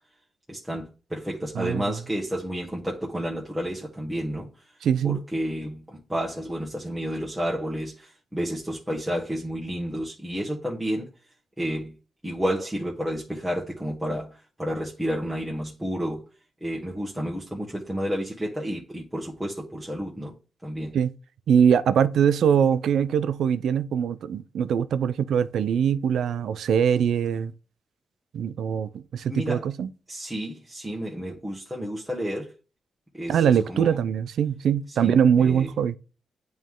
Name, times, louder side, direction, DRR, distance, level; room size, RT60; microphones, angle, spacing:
voice 1, 0.5-4.5 5.0-11.1 11.6-11.9 12.2-16.2 16.6-20.3 20.6-20.9 29.3-29.7 30.1-32.5 33.1-34.0 34.9-35.1 35.4-35.7, equal, 10° right, 1.4 m, -31 dB
voice 2, 1.6-1.9 4.8-5.2 20.9-21.1 21.5-27.5 28.3-29.9 33.3-36.0, right 8 dB, 75° right, 0.4 m, -22 dB
8.9 x 3.1 x 3.7 m
cardioid pair, 65°, 0 cm